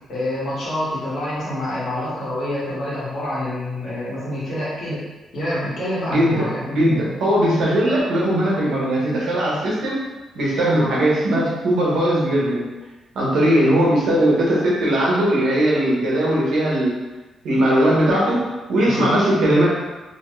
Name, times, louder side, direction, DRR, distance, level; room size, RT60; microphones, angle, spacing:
voice 1, 0.1-5.0 5.3-6.7 10.8-10.9 18.8-19.1, left 1 dB, 55° left, -8 dB, 1.2 m, -27 dB
voice 2, 6.1-10.0 10.3-12.7 13.1-16.9 17.4-19.7, right 1 dB, 75° right, -5 dB, 0.9 m, -19 dB
2.8 x 2.2 x 3.0 m, 1.1 s
cardioid pair, 145°, 0 cm